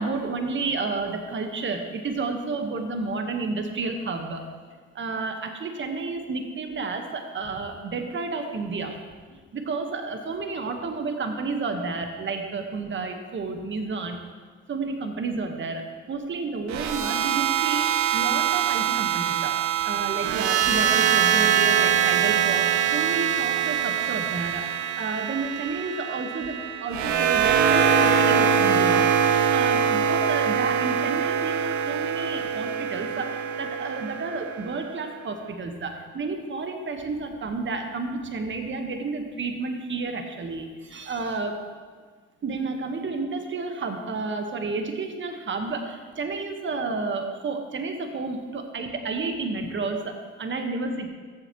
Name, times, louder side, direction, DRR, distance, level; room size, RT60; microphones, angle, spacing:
voice 1, 0.0-4.4 4.9-9.0 9.3-14.2 14.7-29.1 29.5-41.6 42.4-51.1, right 3 dB, 40° right, 5 dB, 1.4 m, -31 dB
sound 1, 16.7-34.9, right 8 dB, 65° right, 0.8 m, -23 dB
14.0 x 7.5 x 3.1 m, 1.5 s
supercardioid pair, 70°, 30 cm